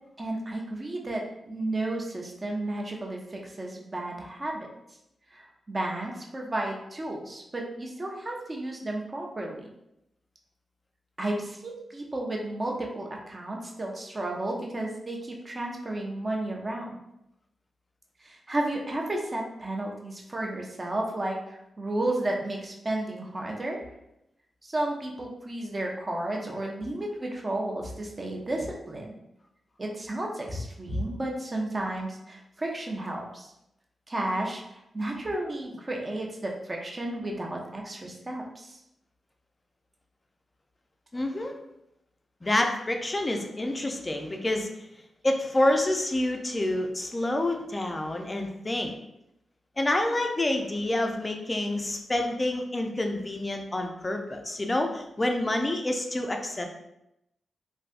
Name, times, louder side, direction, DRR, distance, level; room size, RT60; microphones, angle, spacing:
voice 1, 0.2-4.7 5.3-9.7 11.2-17.0 18.2-23.8 24.6-29.1 29.8-33.5 34.1-34.6 34.9-38.8, right 1 dB, 30° right, 0 dB, 0.6 m, -32 dB
voice 2, 41.1-41.6 42.4-44.7 45.2-48.9 49.8-56.7, left 1 dB, 25° left, 4 dB, 0.4 m, -28 dB
3.3 x 2.6 x 2.4 m, 0.83 s
cardioid pair, 90°, 0 cm